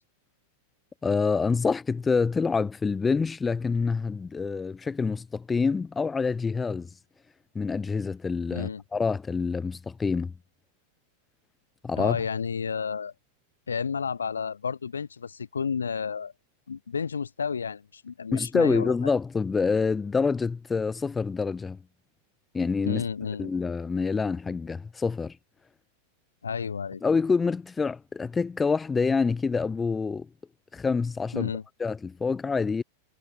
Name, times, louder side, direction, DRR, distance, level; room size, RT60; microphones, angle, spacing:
voice 1, 1.0-6.9 7.5-10.3 11.8-12.2 18.3-21.8 22.5-23.0 23.4-25.3 27.0-30.3 30.7-31.5 31.8-32.8, left 4 dB, 15° left, 2.2 m, -26 dB
voice 2, 8.5-8.8 12.0-13.1 13.7-16.3 16.7-19.1 22.8-23.5 26.4-27.0 31.3-31.6, left 6 dB, 70° left, 1.0 m, -31 dB
figure-of-eight pair, 90°, 0 cm